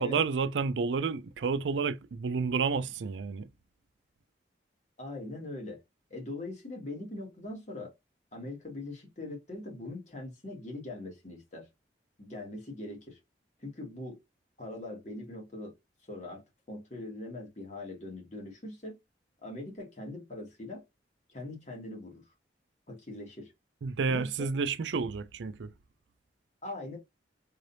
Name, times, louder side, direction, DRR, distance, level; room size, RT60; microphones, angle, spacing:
voice 1, 0.0-3.5 23.8-25.7, right 5 dB, 85° right, 0.4 m, -30 dB
voice 2, 5.0-5.8 6.1-7.9 8.3-11.7 12.2-13.2 13.6-14.2 14.6-15.7 16.1-19.0 19.4-20.8 21.3-22.2 22.9-23.5 24.1-24.5 26.6-27.0, left 2 dB, 40° left, 1.8 m, -41 dB
3.8 x 3.3 x 2.6 m
head